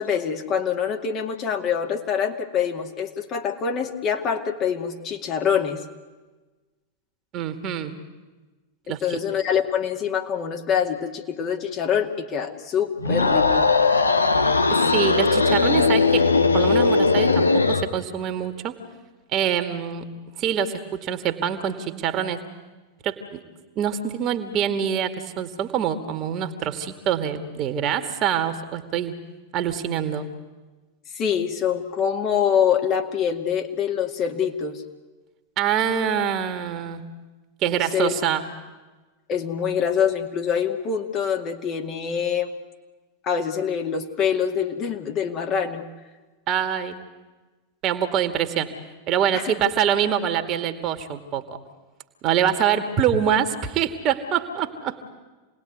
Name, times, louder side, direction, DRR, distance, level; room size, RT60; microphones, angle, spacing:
voice 1, 0.0-5.8 8.9-13.7 31.1-34.8 37.7-38.1 39.3-42.5 43.2-45.8 49.3-49.6, left 7 dB, 35° left, 3 dB, 2.3 m, -25 dB
voice 2, 7.3-7.9 8.9-9.2 14.7-16.3 16.5-18.8 19.3-20.1 20.4-22.4 23.0-23.4 23.8-29.1 29.5-30.3 35.6-37.0 37.6-38.5 46.5-47.0 47.8-48.7 49.1-51.6 52.2-55.0, right 8 dB, 35° right, 7 dB, 2.3 m, -25 dB
sound 1, 13.0-17.9, left 4 dB, 80° left, 1.4 m, -19 dB
28.0 x 20.0 x 9.6 m, 1.2 s
figure-of-eight pair, 90°, 0 cm